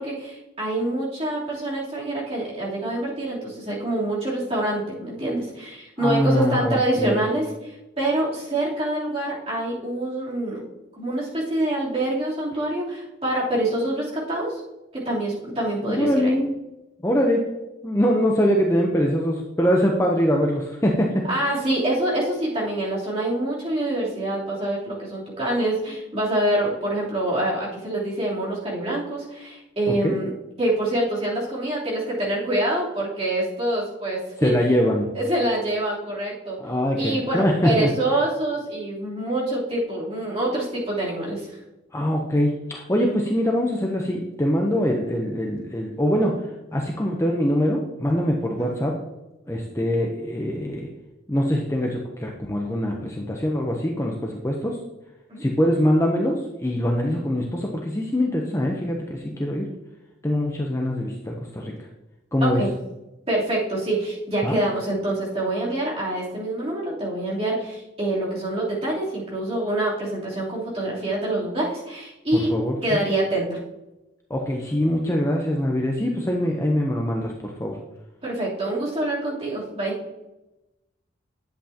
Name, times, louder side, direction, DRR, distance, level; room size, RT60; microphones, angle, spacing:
voice 1, 0.0-10.6 11.0-14.6 15.0-16.3 21.3-30.3 30.6-34.5 35.1-36.6 37.0-41.5 48.6-48.7 55.3-55.4 62.4-62.7 63.3-72.5 72.8-73.6 78.2-79.9, right 1 dB, 30° right, -7 dB, 3.2 m, -26 dB
voice 2, 6.0-7.2 15.9-16.5 17.0-17.5 17.8-21.5 29.9-30.1 34.4-35.1 36.6-37.9 41.9-46.4 46.7-49.0 49.5-50.9 51.3-54.8 55.4-59.7 60.2-61.7 62.3-62.6 64.4-64.6 72.3-73.0 74.3-77.8, equal, 15° left, 0 dB, 0.7 m, -23 dB
10.5 x 7.8 x 2.8 m, 0.99 s
head